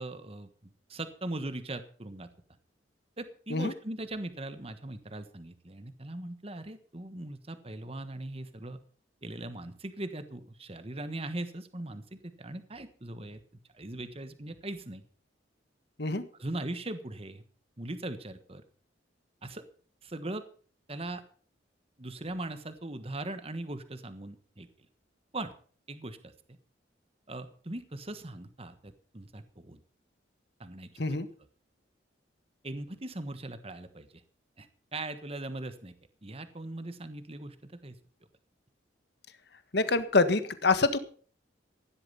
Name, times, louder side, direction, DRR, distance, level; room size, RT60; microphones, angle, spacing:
voice 1, 0.0-2.3 3.2-8.8 9.2-13.4 13.7-15.0 16.3-17.4 17.8-18.6 19.4-19.6 20.0-20.4 20.9-21.2 22.0-24.7 25.3-25.5 25.9-26.3 27.3-29.8 30.6-31.2 32.6-34.2 34.6-35.9 36.2-38.0, right 2 dB, 30° right, 11 dB, 1.4 m, -40 dB
voice 2, 39.7-41.0, left 3 dB, 60° left, 12 dB, 1.6 m, -26 dB
16.0 x 12.0 x 5.6 m, 0.43 s
head